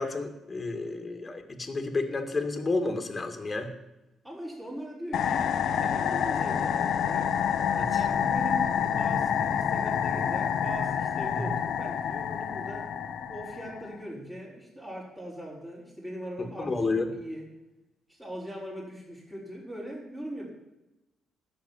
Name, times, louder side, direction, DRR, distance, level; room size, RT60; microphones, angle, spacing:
voice 1, 0.0-3.7 7.8-7.9 16.6-17.1, left 3 dB, 30° left, 5 dB, 2.1 m, -30 dB
voice 2, 4.2-5.5 5.8-7.4 7.9-12.9 13.3-17.5 18.1-20.5, right 1 dB, 15° right, -6 dB, 5.7 m, -40 dB
sound 1, 5.1-13.9, left 8 dB, 70° left, 0.9 m, -28 dB
11.5 x 6.9 x 9.7 m, 0.97 s
cardioid pair, 90°, 0 cm